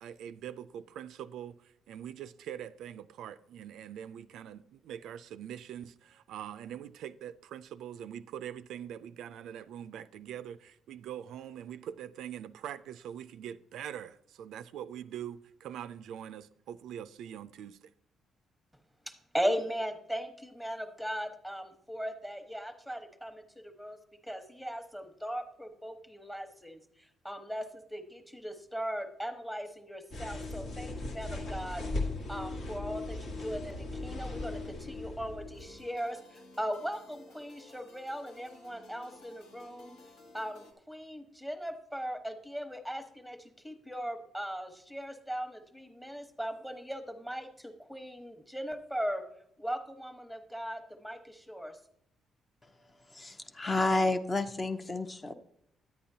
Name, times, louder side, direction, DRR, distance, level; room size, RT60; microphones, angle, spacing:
voice 1, 0.0-17.9, right 10 dB, 80° right, 0.3 m, -43 dB
voice 2, 19.1-24.0 24.2-26.8 27.2-31.8 32.3-40.0 40.3-43.4 43.6-49.2 49.6-51.8, equal, 5° left, 1.0 m, -38 dB
sound 1, 30.1-35.9, left 2 dB, 75° left, 1.5 m, -38 dB
sound 2, 35.5-40.7, left 2 dB, 90° left, 1.3 m, -55 dB
voice 3, 53.1-55.3, left 2 dB, 25° left, 0.6 m, -30 dB
10.5 x 8.5 x 2.7 m
cardioid pair, 90°, 0 cm